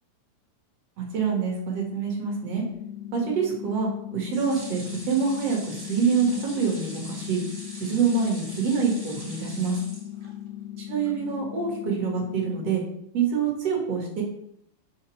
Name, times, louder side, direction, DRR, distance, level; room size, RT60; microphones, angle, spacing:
voice 1, 1.0-2.6 3.1-4.8 5.1-7.4 7.7-9.8 10.9-12.8 13.1-14.2, right 5 dB, 50° right, -1 dB, 2.5 m, -26 dB
sound 1, 2.7-12.7, left 12 dB, 85° left, 2.5 m, -39 dB
sound 2, 4.3-10.6 11.0-11.1 11.4-11.5, equal, 15° right, 1.2 m, -43 dB
6.9 x 4.3 x 6.1 m, 0.75 s
omnidirectional pair, 4.3 m